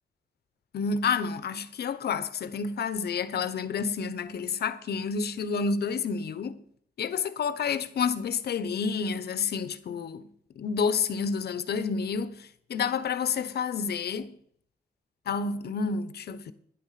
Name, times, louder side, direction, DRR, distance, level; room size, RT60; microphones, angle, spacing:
voice 1, 0.7-6.6 7.0-10.3 10.6-14.4 15.3-16.5, left 5 dB, 80° left, 1.1 m, -29 dB
12.5 x 10.5 x 5.9 m
wide cardioid pair, 135°, 16 cm